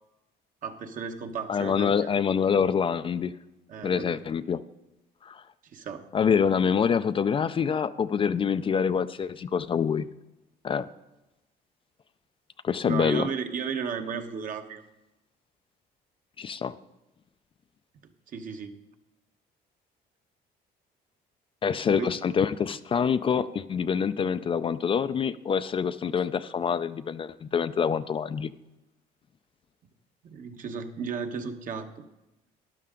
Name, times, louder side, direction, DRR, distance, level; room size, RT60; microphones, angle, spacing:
voice 1, 0.6-1.9 3.7-4.1 5.7-6.1 12.8-14.8 18.3-18.8 21.9-22.1 30.2-31.9, right 6 dB, 50° right, 6 dB, 1.1 m, -34 dB
voice 2, 1.5-3.3 3.8-4.6 5.2-5.4 6.1-10.1 10.6-10.9 12.6-13.3 16.4-16.8 21.6-28.5, left 7 dB, 30° left, 12 dB, 0.4 m, -26 dB
12.5 x 11.0 x 3.8 m, 0.98 s
cardioid pair, 110°, 17 cm